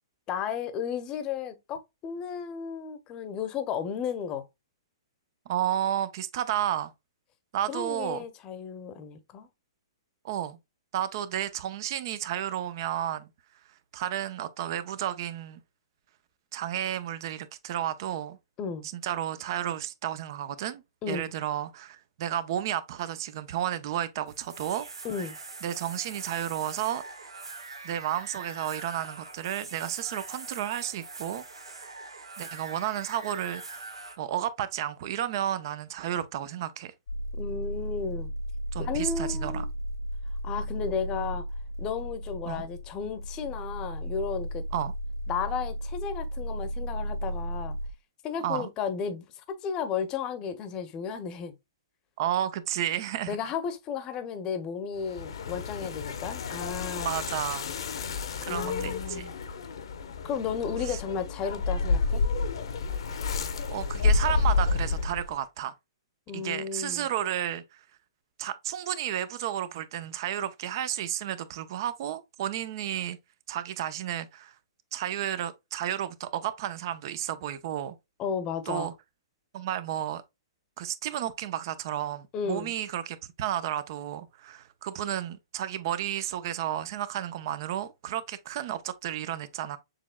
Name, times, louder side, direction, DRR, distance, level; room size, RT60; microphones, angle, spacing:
voice 1, 0.3-4.5 7.7-9.5 18.6-18.9 21.0-21.3 25.0-25.3 37.4-38.3 38.8-39.7 40.4-41.4 41.8-44.6 45.3-47.8 48.2-51.6 53.3-57.1 58.5-59.3 60.2-62.2 66.3-67.1 78.2-78.9 82.3-82.7, left 6 dB, 30° left, 0.8 m, -34 dB
voice 2, 5.5-6.9 7.5-8.2 10.2-10.6 10.9-13.3 13.9-15.6 16.5-18.4 18.9-24.9 25.6-27.0 27.8-31.4 32.4-33.8 34.2-36.9 38.7-39.6 42.5-42.7 44.7-44.9 48.4-48.7 52.2-53.4 57.0-57.7 58.4-59.3 60.8-61.0 63.7-65.7 66.3-67.8 68.4-73.2 73.5-74.5 74.9-77.9 78.7-78.9 79.5-80.2 80.8-89.8, right 11 dB, 50° right, 0.6 m, -32 dB
sound 1, 24.3-34.1, right 3 dB, 85° right, 1.5 m, -43 dB
sound 2, 37.1-47.9, equal, 90° left, 1.2 m, -34 dB
sound 3, 55.0-65.4, left 4 dB, 70° left, 0.8 m, -30 dB
6.7 x 3.1 x 2.2 m
hypercardioid pair, 130°, 3 cm